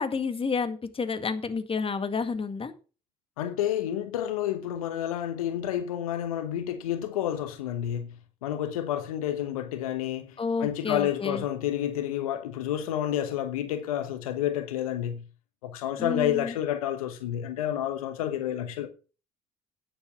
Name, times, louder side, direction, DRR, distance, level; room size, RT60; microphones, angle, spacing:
voice 1, 0.0-2.7 10.4-11.4 16.0-16.6, left 5 dB, 30° left, 1.9 m, -30 dB
voice 2, 3.4-8.1 8.4-15.2 15.6-18.9, left 11 dB, 85° left, 1.0 m, -30 dB
9.4 x 7.5 x 6.1 m
hypercardioid pair, 60°, 18 cm